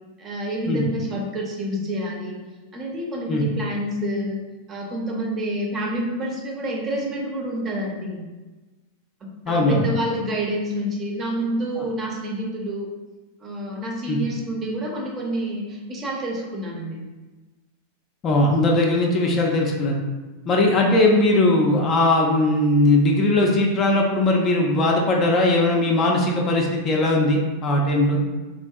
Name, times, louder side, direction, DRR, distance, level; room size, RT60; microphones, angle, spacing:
voice 1, 0.2-2.4 2.7-4.4 4.7-8.2 9.2-12.9 13.4-17.1, right 1 dB, 25° right, -1 dB, 0.6 m, -28 dB
voice 2, 9.5-9.8 11.8-11.9 14.1-14.2 18.2-20.0 20.5-28.2, left 2 dB, 30° left, 0 dB, 0.4 m, -19 dB
3.5 x 2.5 x 2.3 m, 1.2 s
figure-of-eight pair, 90°, 0 cm